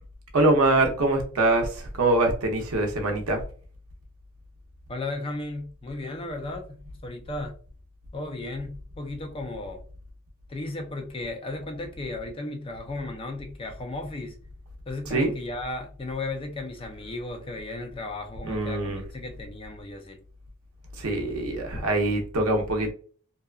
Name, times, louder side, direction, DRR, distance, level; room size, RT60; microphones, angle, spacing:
voice 1, 0.3-3.4 15.1-15.3 18.5-19.0 21.0-22.9, right 2 dB, 85° right, 0.6 m, -24 dB
voice 2, 4.9-7.5 8.1-9.8 10.5-14.4 14.9-20.2, left 2 dB, 25° left, 0.4 m, -35 dB
2.7 x 2.2 x 2.3 m
head